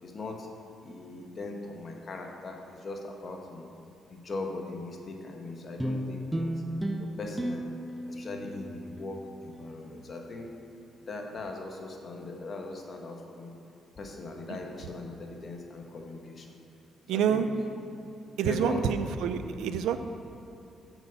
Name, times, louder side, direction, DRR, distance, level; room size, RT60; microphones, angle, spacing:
voice 1, 0.0-0.5 0.8-3.7 4.1-6.5 6.9-7.7 8.1-10.5 11.0-13.5 14.0-16.6 17.1-17.5 18.4-18.9, left 2 dB, 40° left, 2 dB, 1.1 m, -39 dB
sound 1, 5.8-10.4, right 1 dB, 10° right, 0.5 m, -35 dB
voice 2, 17.1-17.5 18.4-20.0, right 8 dB, 85° right, 10 dB, 0.4 m, -27 dB
6.1 x 5.3 x 6.8 m, 2.7 s
cardioid pair, 90°, 0 cm